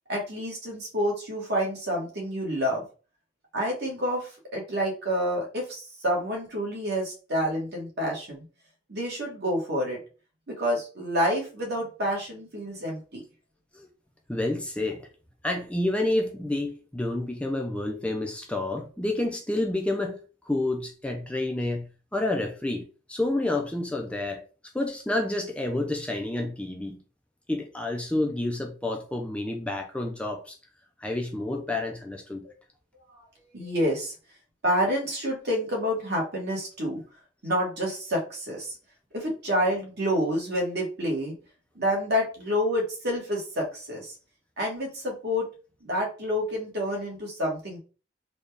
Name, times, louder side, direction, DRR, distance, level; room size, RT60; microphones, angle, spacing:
voice 1, 0.1-2.8 3.5-8.4 8.9-10.0 10.5-13.2 32.4-32.5 33.1-33.2 33.5-34.1 34.6-37.0 37.4-38.7 39.1-41.3 41.7-44.1 44.6-45.5 45.8-47.8, equal, 60° right, 1.6 m, -28 dB
voice 2, 14.3-15.1 15.4-20.2 20.5-24.4 24.7-27.0 27.5-30.6 31.0-32.5, left 2 dB, 5° left, 0.4 m, -29 dB
3.9 x 2.3 x 3.4 m
head